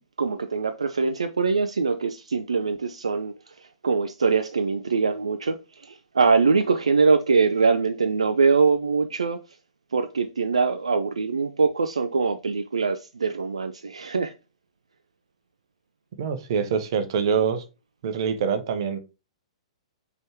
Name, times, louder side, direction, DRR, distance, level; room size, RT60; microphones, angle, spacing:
voice 1, 0.2-3.3 3.8-5.6 5.8-9.4 9.9-14.3, right 4 dB, 70° right, 0.4 m, -23 dB
voice 2, 16.2-17.6 18.0-19.0, right 6 dB, 45° right, 0.7 m, -25 dB
5.1 x 3.5 x 2.9 m
figure-of-eight pair, 110°, 3 cm